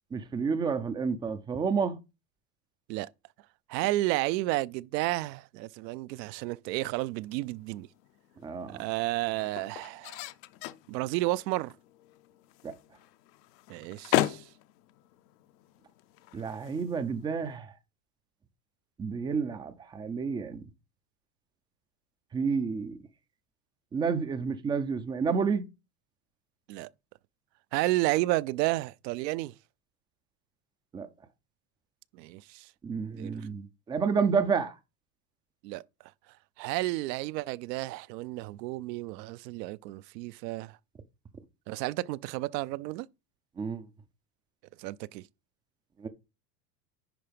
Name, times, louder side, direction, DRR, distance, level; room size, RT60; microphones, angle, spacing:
voice 1, 0.1-2.0 8.4-8.8 12.6-12.7 16.3-17.7 19.0-20.7 22.3-23.0 23.9-25.6 30.9-31.1 32.8-34.8 43.6-43.9 46.0-46.1, right 5 dB, 10° right, 0.3 m, -30 dB
voice 2, 3.7-7.9 8.7-10.2 10.9-11.7 13.7-14.5 26.7-26.9 27.7-29.5 32.1-32.7 33.2-33.3 35.6-35.8 36.6-40.8 41.7-43.1 44.8-45.3, right 18 dB, 80° right, 0.6 m, -31 dB
sound 1, 7.2-17.6, left 15 dB, 70° left, 0.8 m, -37 dB
10.5 x 3.8 x 5.1 m
supercardioid pair, 130°, 50 cm